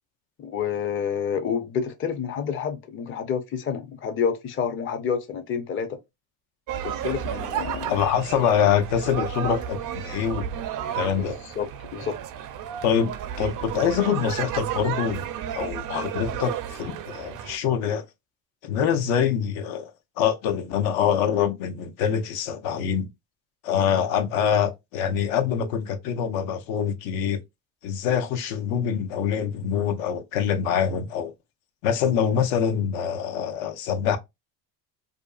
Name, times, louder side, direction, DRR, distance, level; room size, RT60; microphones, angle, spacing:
voice 1, 0.4-6.0 6.8-8.0 11.1-12.2, left 7 dB, 30° left, 0.5 m, -29 dB
sound 1, 6.7-17.6, right 9 dB, 45° right, 0.4 m, -32 dB
voice 2, 7.9-10.5 10.9-11.4 12.8-13.1 13.4-18.0 18.6-19.9 20.2-23.1 23.6-27.4 27.8-31.3 31.8-34.2, left 8 dB, 70° left, 0.6 m, -25 dB
2.6 x 2.3 x 2.3 m
supercardioid pair, 80°, 47 cm